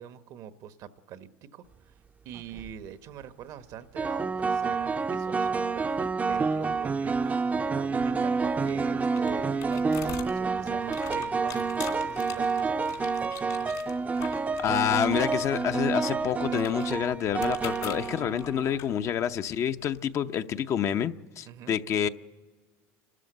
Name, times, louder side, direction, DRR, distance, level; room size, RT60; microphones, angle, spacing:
voice 1, 0.0-2.0 2.2-12.8 21.4-21.8, right 10 dB, 65° right, 11 dB, 1.0 m, -44 dB
sound 1, 2.4-2.7 4.0-18.8, right 4 dB, 25° right, 0.6 m, -28 dB
sound 2, 8.3-20.0, left 11 dB, 65° left, 2.7 m, -45 dB
voice 2, 14.6-22.1, left 9 dB, 50° left, 9 dB, 0.7 m, -28 dB
29.0 x 13.0 x 7.9 m, 1.4 s
supercardioid pair, 95°, 7 cm